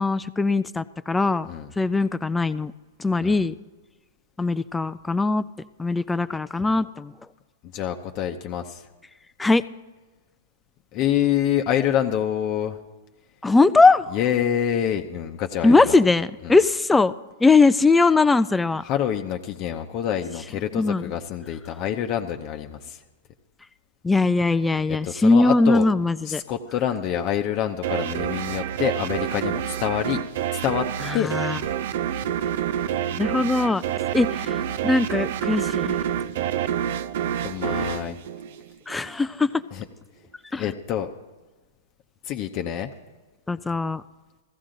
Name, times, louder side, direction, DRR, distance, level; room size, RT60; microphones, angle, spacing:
voice 1, 0.0-1.5 1.8-2.7 3.0-3.5 4.4-5.4 5.8-7.1 9.4-9.6 13.4-14.1 15.6-17.1 17.4-18.8 20.8-21.0 24.0-26.4 31.0-31.6 33.1-33.8 34.1-35.9 38.9-39.6 40.5-40.7 43.5-44.0, left 3 dB, 10° left, 15 dB, 0.3 m, -20 dB
voice 2, 7.7-8.8 10.9-12.8 14.1-16.0 16.4-16.6 18.8-23.0 25.0-25.9 26.3-30.2 30.5-30.9 31.1-31.3 32.2-32.4 37.4-38.2 39.7-39.8 40.6-41.1 42.3-42.9, left 10 dB, 40° left, 5 dB, 0.8 m, -26 dB
sound 1, 27.8-39.1, right 10 dB, 60° right, 0.4 m, -28 dB
15.0 x 14.5 x 3.9 m, 1.2 s
hypercardioid pair, 110°, 0 cm